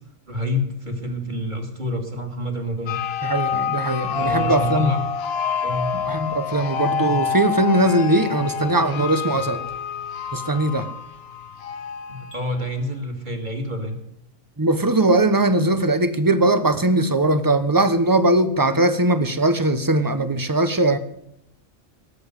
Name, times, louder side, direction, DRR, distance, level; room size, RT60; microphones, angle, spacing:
voice 1, 0.3-3.0 4.2-5.0 5.6-5.9 10.7-10.8 12.1-14.0, left 1 dB, 35° right, 4 dB, 2.7 m, -28 dB
sound 1, 2.9-12.6, left 7 dB, 55° left, 0.8 m, -27 dB
voice 2, 3.2-4.9 5.9-9.6 10.3-10.9 14.6-21.0, right 2 dB, 15° right, 11 dB, 1.0 m, -20 dB
sound 2, 6.7-6.9 8.7-8.9 10.7-10.9 12.3-12.4, right 1 dB, 85° left, 7.6 m, -43 dB
18.5 x 8.0 x 8.1 m, 0.77 s
omnidirectional pair, 1.4 m